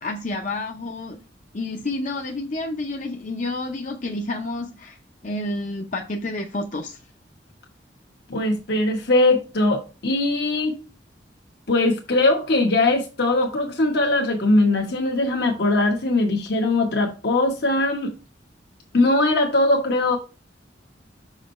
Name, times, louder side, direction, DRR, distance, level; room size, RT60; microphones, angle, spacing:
voice 1, 0.0-1.2 1.5-5.0 5.2-7.0, left 2 dB, 45° left, 0.7 m, -29 dB
voice 2, 8.3-10.8 11.7-18.1 18.9-20.2, left 2 dB, 65° left, 1.1 m, -20 dB
6.2 x 5.0 x 4.2 m
head